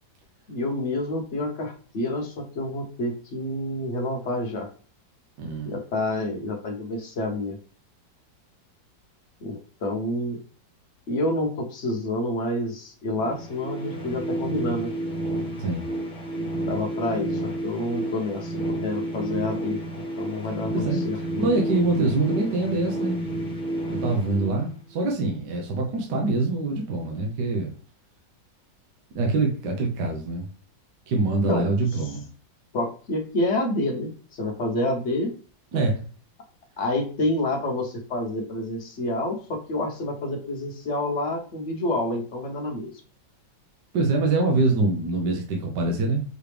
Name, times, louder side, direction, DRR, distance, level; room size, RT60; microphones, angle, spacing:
voice 1, 0.5-4.7 5.6-7.6 9.4-10.4 11.1-14.9 16.3-19.8 20.2-21.5 31.5-31.7 32.7-35.3 36.8-42.9, left 1 dB, 45° left, 1 dB, 1.0 m, -28 dB
voice 2, 5.4-5.8 15.6-15.9 20.7-23.2 23.9-27.7 29.1-30.4 31.1-32.3 35.7-36.0 43.9-46.2, right 3 dB, 70° right, 0 dB, 1.5 m, -24 dB
sound 1, 13.1-25.1, right 1 dB, 5° left, 0.8 m, -31 dB
4.9 x 3.1 x 3.3 m, 0.39 s
omnidirectional pair, 2.1 m